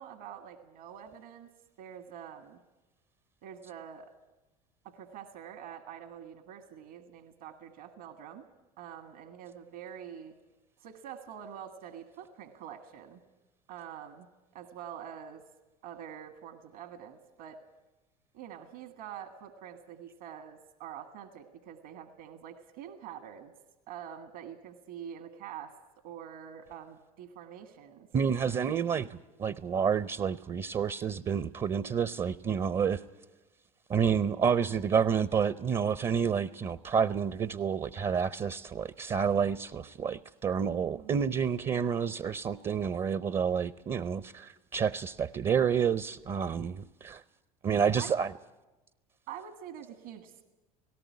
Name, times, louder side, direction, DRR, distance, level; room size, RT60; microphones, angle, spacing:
voice 1, 0.0-1.5 1.8-2.6 3.4-4.1 4.8-8.4 8.8-10.3 10.8-13.2 13.7-15.4 15.8-17.6 18.3-23.5 23.9-25.7 26.0-28.1 40.8-41.2 48.0-48.2 49.3-50.4, right 9 dB, 70° right, 1.7 m, -46 dB
voice 2, 28.1-33.0 33.9-47.2 47.6-48.3, right 7 dB, 30° right, 0.6 m, -29 dB
18.0 x 17.5 x 9.6 m
hypercardioid pair, 80°, 19 cm